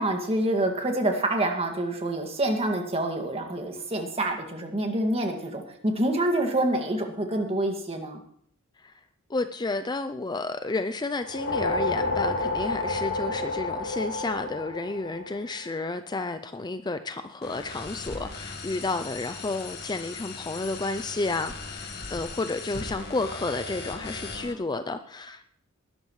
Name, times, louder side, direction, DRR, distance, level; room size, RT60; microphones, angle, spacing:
voice 1, 0.0-8.2, right 1 dB, 25° right, 2 dB, 2.1 m, -27 dB
voice 2, 9.3-25.4, left 3 dB, 20° left, 10 dB, 0.5 m, -31 dB
sound 1, 11.1-15.7, left 2 dB, 65° left, 4.0 m, -30 dB
sound 2, 17.4-24.5, left 3 dB, 50° left, 1.7 m, -38 dB
20.0 x 12.5 x 3.2 m, 0.62 s
head